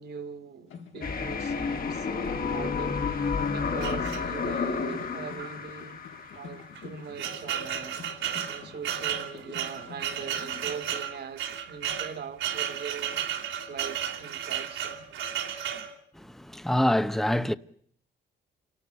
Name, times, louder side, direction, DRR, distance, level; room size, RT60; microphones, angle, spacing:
voice 1, 0.0-6.0 6.3-8.0 8.5-13.2 13.7-15.0, right 6 dB, 55° right, 2.1 m, -41 dB
sound 1, 0.7-11.0, left 7 dB, 80° left, 4.5 m, -48 dB
sound 2, 1.0-6.9, left 5 dB, 45° left, 2.2 m, -31 dB
sound 3, 3.8-4.7 5.4-5.5 5.8-5.9 6.6-15.9, right 9 dB, 85° right, 3.3 m, -33 dB
voice 2, 16.2-17.5, left 1 dB, ahead, 0.8 m, -26 dB
28.0 x 13.0 x 9.0 m
cardioid pair, 90°, 20 cm